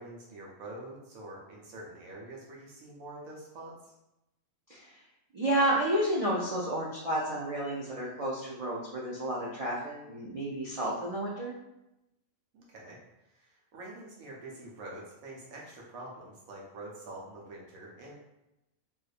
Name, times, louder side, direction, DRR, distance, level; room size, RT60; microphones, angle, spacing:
voice 1, 0.0-3.9 12.5-13.0 13.3-18.2, right 2 dB, 90° right, -3 dB, 1.2 m, -46 dB
voice 2, 4.7-5.0 5.3-11.5, right 1 dB, 60° right, -5 dB, 0.3 m, -31 dB
4.0 x 2.5 x 2.5 m, 0.90 s
omnidirectional pair, 1.4 m